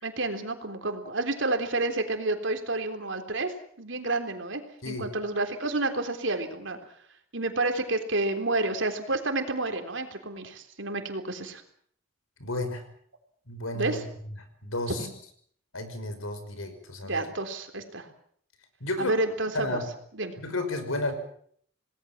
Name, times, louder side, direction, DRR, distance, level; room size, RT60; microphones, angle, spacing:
voice 1, 0.0-6.8 7.3-11.6 13.7-14.0 15.0-15.1 17.0-18.1 19.0-19.8 20.1-20.3, right 2 dB, 65° right, 6 dB, 3.7 m, -30 dB
voice 2, 12.4-12.8 13.5-14.0 14.6-15.1 15.7-17.2 18.8-19.2 19.5-19.8 20.4-21.1, left 2 dB, 85° left, 8 dB, 5.6 m, -32 dB
28.0 x 19.0 x 7.4 m, 0.62 s
head